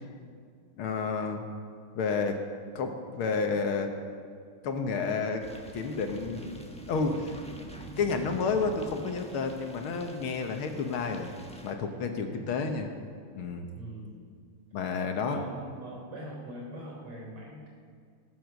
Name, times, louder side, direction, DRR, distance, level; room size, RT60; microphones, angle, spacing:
voice 1, 0.8-1.4 2.0-2.4 2.8-3.9 4.6-5.5 5.7-6.6 6.9-7.4 8.0-11.3 11.6-12.9 13.3-13.7 14.7-15.4, left 4 dB, 75° left, 5 dB, 2.0 m, -30 dB
sound 1, 5.4-11.7, equal, 5° left, 0.5 m, -46 dB
voice 2, 12.4-12.7 13.7-14.1 15.2-17.7, right 1 dB, 85° right, -2 dB, 4.5 m, -42 dB
18.5 x 7.8 x 6.5 m, 2.1 s
omnidirectional pair, 2.4 m